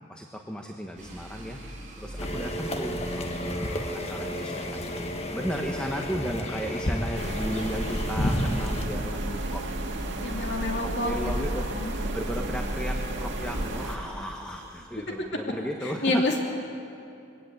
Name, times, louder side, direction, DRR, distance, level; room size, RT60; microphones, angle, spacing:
voice 1, 0.1-1.6 2.0-9.6 10.8-16.3, equal, 5° left, 2 dB, 1.1 m, -35 dB
sound 1, 1.0-8.9, right 1 dB, 40° right, 6.9 m, -46 dB
sound 2, 2.2-8.9, equal, 35° left, 1.4 m, -31 dB
sound 3, 7.1-14.0, right 1 dB, 70° right, 2.4 m, -31 dB
voice 2, 10.2-11.9 15.8-16.4, left 2 dB, 65° left, 1 dB, 2.7 m, -29 dB
22.0 x 17.5 x 8.1 m, 2.6 s
head